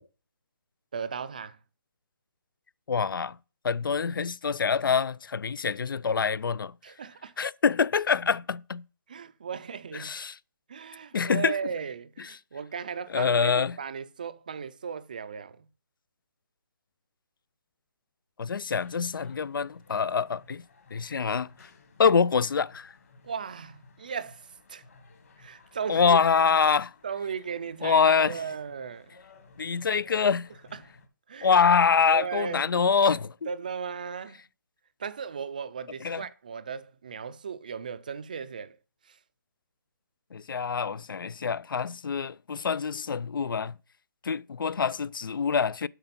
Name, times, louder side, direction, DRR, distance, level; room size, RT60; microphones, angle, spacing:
voice 1, 0.9-1.6 6.8-7.3 9.1-10.1 10.7-15.7 23.2-24.8 25.4-26.2 27.0-29.1 30.7-30.9 31.3-31.5 32.1-32.7 33.5-34.4 35.0-38.8 39.1-39.2, right 6 dB, 25° right, 0.4 m, -36 dB
voice 2, 2.9-3.4 3.6-6.7 7.4-8.8 9.9-10.4 11.1-11.6 13.1-13.8 18.4-20.6 20.9-21.5 22.0-22.9 25.9-26.9 27.8-28.4 29.6-30.5 31.4-33.3 36.0-36.2 40.3-43.7 44.2-45.9, left 6 dB, 90° left, 0.4 m, -25 dB
sound 1, 18.8-31.1, left 4 dB, 45° left, 1.7 m, -56 dB
7.9 x 5.8 x 5.8 m
hypercardioid pair, 175°, 11 cm